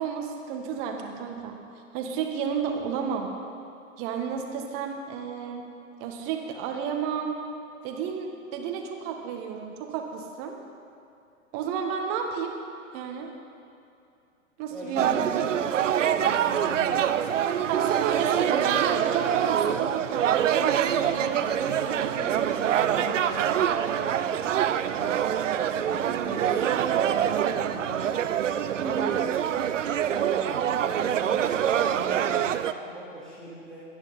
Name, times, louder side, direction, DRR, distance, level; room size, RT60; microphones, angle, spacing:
voice 1, 0.0-1.6 1.9-3.3 4.0-5.7 6.0-7.4 7.8-10.5 11.5-12.6 12.9-13.3 14.6-15.5 17.7-21.5 25.9-26.4 28.8-29.1, right 7 dB, 30° right, 3 dB, 1.7 m, -31 dB
voice 2, 14.7-15.7 16.0-17.0 18.2-18.3 20.9-24.6 24.9-25.3 25.8-28.2 28.7-29.4 30.1-33.8, right 1 dB, ahead, -11 dB, 3.0 m, -40 dB
sound 1, 15.0-32.7, right 9 dB, 65° right, 0.7 m, -25 dB
22.0 x 9.8 x 4.2 m, 2.6 s
figure-of-eight pair, 115°, 41 cm